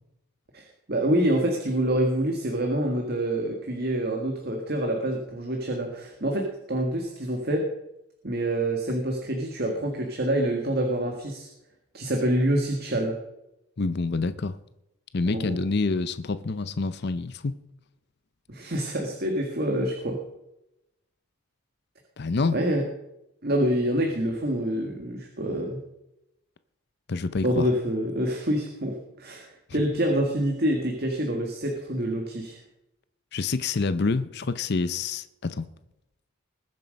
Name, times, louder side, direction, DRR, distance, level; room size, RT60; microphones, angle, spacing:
voice 1, 0.5-7.7 8.2-11.5 11.9-13.2 15.3-15.6 18.5-20.2 22.5-22.8 23.4-25.8 27.4-32.6, right 1 dB, 45° right, 1.7 m, -26 dB
voice 2, 13.8-14.6 15.1-17.6 22.2-22.6 27.1-27.7 33.3-35.7, left 3 dB, 50° left, 0.6 m, -27 dB
20.5 x 7.6 x 5.2 m
head